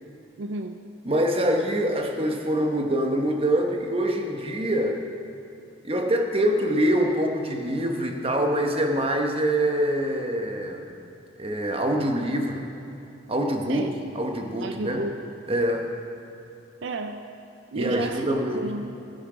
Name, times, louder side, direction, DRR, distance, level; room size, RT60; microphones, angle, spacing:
voice 1, 0.4-0.8 13.7-14.0 14.6-15.2 16.8-17.3 17.7-18.9, right 2 dB, 65° right, 7 dB, 0.5 m, -32 dB
voice 2, 1.0-5.0 5.8-10.8 11.4-12.6 13.3-13.9 14.1-15.0 15.5-15.8 17.7-18.6, right 1 dB, 30° right, 3 dB, 1.1 m, -25 dB
15.5 x 10.5 x 5.0 m, 2.9 s
head